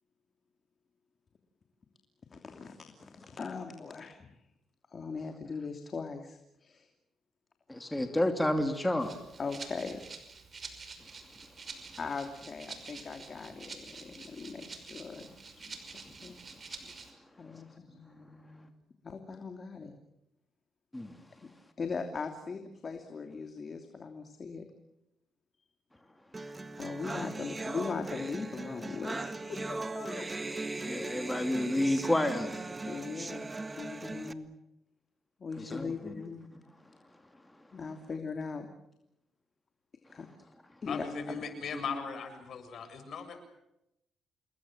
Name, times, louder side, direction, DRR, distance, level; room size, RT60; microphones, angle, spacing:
voice 1, 2.3-4.3 4.9-6.9 9.4-10.0 12.0-15.8 16.2-16.4 17.4-18.7 19.0-19.9 21.8-24.7 26.8-30.3 32.8-34.5 35.4-36.5 37.7-38.7 40.1-40.3 40.8-41.4, left 4 dB, 40° left, 5 dB, 2.9 m, -40 dB
voice 2, 7.7-9.2 20.9-21.1 27.0-27.2 30.8-32.8 35.6-36.1, left 1 dB, 10° left, 5 dB, 2.9 m, -30 dB
Rattle (instrument), 9.0-17.1, right 4 dB, 40° right, 5.7 m, -47 dB
sound 1, 26.3-34.3, right 2 dB, 20° right, 1.7 m, -39 dB
voice 3, 40.9-43.4, left 5 dB, 60° left, 8 dB, 7.1 m, -38 dB
28.5 x 21.0 x 7.5 m, 0.86 s
cardioid pair, 90°, 0 cm